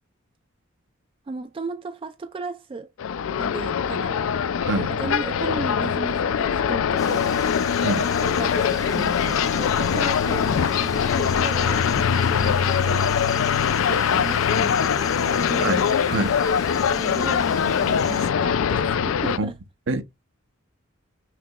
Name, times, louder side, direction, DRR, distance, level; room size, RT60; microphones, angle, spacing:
voice 1, 1.3-2.9 3.4-4.2 4.8-7.3 8.2-13.1 13.8-15.8 16.9-19.6, right 3 dB, 25° right, 0.3 m, -35 dB
sound 1, 3.0-19.4, left 7 dB, 70° left, 0.4 m, -22 dB
Insect, 7.0-18.3, left 3 dB, 20° left, 0.6 m, -38 dB
voice 2, 15.6-16.3 19.4-19.5 19.9-20.0, right 2 dB, 60° right, 0.7 m, -26 dB
5.8 x 2.3 x 2.9 m
head